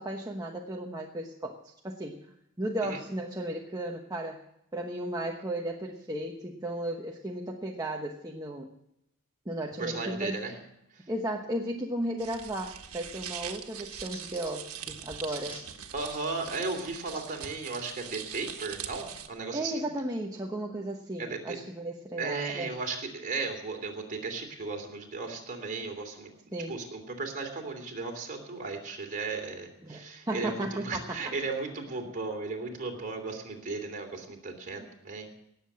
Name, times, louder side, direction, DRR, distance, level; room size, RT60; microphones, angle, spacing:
voice 1, 0.0-4.4 4.7-8.7 9.4-10.5 11.1-15.6 19.5-22.7 26.5-26.8 29.8-31.3 34.8-34.9, right 1 dB, 15° right, 0 dB, 1.1 m, -35 dB
voice 2, 9.8-10.5 10.9-11.0 15.9-19.8 21.2-21.6 22.2-26.3 26.7-35.3, right 3 dB, 40° right, 2 dB, 3.0 m, -35 dB
sound 1, 12.2-19.3, right 9 dB, 85° right, 1.5 m, -42 dB
sound 2, 12.9-13.0 13.4-14.7 15.2-15.7 16.2-16.3 17.1-17.3 18.0-18.2, left 1 dB, 25° left, 3.9 m, -49 dB
18.5 x 7.7 x 8.5 m, 0.82 s
head